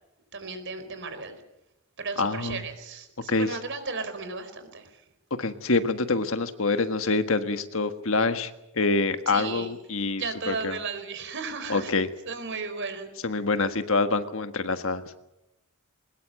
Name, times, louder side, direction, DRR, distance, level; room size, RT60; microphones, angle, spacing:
voice 1, 0.3-1.4 2.0-5.0 9.3-9.7 10.2-11.9 12.2-13.1, right 4 dB, 55° right, 9 dB, 4.3 m, -35 dB
voice 2, 2.2-2.6 3.3-3.6 5.4-10.8 11.7-12.1 13.2-15.0, left 3 dB, 60° left, 9 dB, 1.6 m, -26 dB
22.5 x 20.5 x 7.8 m, 0.90 s
head